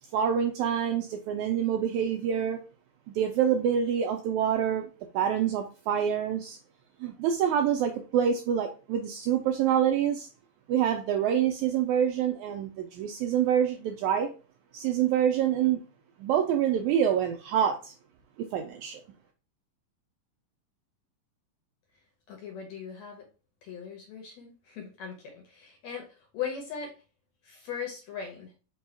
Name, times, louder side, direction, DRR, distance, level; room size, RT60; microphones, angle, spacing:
voice 1, 0.1-2.6 3.1-4.9 5.1-6.6 7.0-10.3 10.7-14.3 14.7-15.8 16.2-17.9 18.5-19.0, right 9 dB, 80° right, 4 dB, 1.7 m, -26 dB
voice 2, 22.3-23.3 23.6-26.9 27.4-28.5, left 7 dB, 70° left, 2 dB, 1.7 m, -39 dB
5.3 x 2.3 x 4.2 m, 0.34 s
omnidirectional pair, 3.8 m